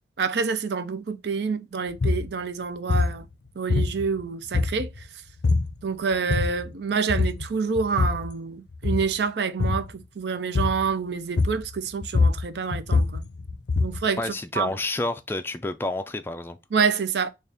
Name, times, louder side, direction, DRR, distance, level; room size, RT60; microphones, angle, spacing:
voice 1, 0.2-3.3 3.6-4.9 5.8-13.3 13.8-14.2 14.6-14.7 16.7-17.3, right 5 dB, 70° right, 0.5 m, -27 dB
sound 1, 1.9-2.3 2.9-3.2 3.7-4.2 4.5-5.0 5.4-5.7 6.1-6.7 7.1-7.5 7.8-8.3 8.7-9.1 9.6-9.9 10.6-10.9 11.4-11.7 12.0-14.1, left 3 dB, 70° left, 0.5 m, -24 dB
voice 2, 14.2-16.6, left 2 dB, 15° left, 0.3 m, -29 dB
4.0 x 2.4 x 3.3 m
head